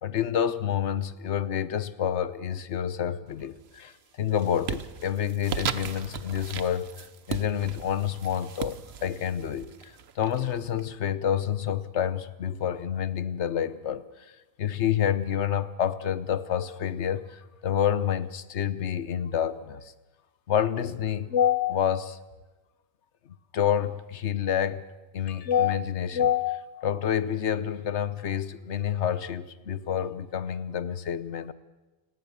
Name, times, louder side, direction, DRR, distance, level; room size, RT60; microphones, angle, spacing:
voice 1, 0.0-14.3 14.6-19.9 20.5-22.2 23.5-24.9 25.1-31.5, left 9 dB, 90° left, 1.2 m, -28 dB
sound 1, 3.3-3.8 4.2-10.8, right 7 dB, 70° right, 1.1 m, -37 dB
29.0 x 18.5 x 6.8 m
omnidirectional pair, 1.1 m